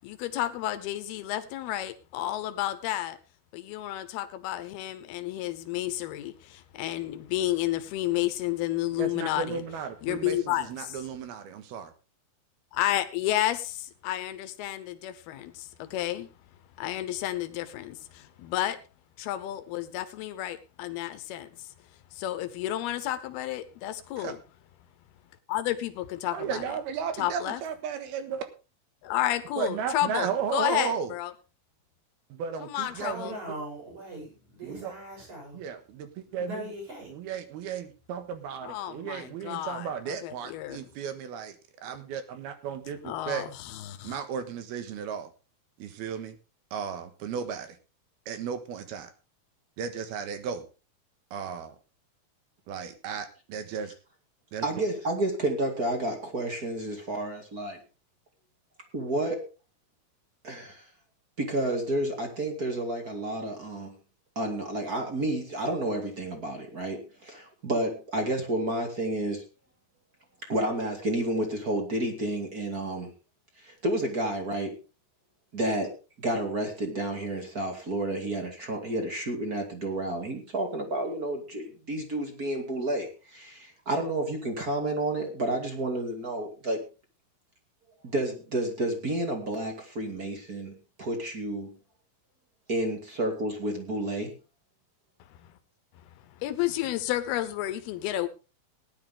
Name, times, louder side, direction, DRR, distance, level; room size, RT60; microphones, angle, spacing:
voice 1, 0.0-3.2 3.5-9.6 10.0-11.0 12.7-16.3 16.8-18.8 19.2-21.7 22.1-24.4 25.5-26.6 27.2-27.6 29.0-31.3 32.6-33.3 38.6-40.8 43.0-44.2 95.3-95.5 96.4-98.3, left 14 dB, 85° left, 2.9 m, -31 dB
voice 2, 9.0-11.9 24.2-24.4 26.3-28.4 29.6-31.1 32.3-33.3 34.6-34.9 35.5-36.6 37.1-41.6 41.8-43.5 44.0-45.3 45.8-46.4 46.7-47.8 48.3-49.1 49.8-50.6 51.3-51.7 52.7-53.9 54.5-54.6, right 7 dB, 80° right, 3.4 m, -34 dB
voice 3, 32.9-35.6 36.3-37.1, equal, 50° right, 9.4 m, -40 dB
voice 4, 54.6-57.8 58.9-59.5 60.4-60.8 61.4-63.9 64.4-69.4 70.5-73.1 73.6-74.8 75.5-75.9 76.2-86.8 88.0-90.7 91.0-91.7 92.7-94.3, right 1 dB, 30° right, 2.1 m, -30 dB
17.5 x 10.5 x 3.6 m
omnidirectional pair, 4.4 m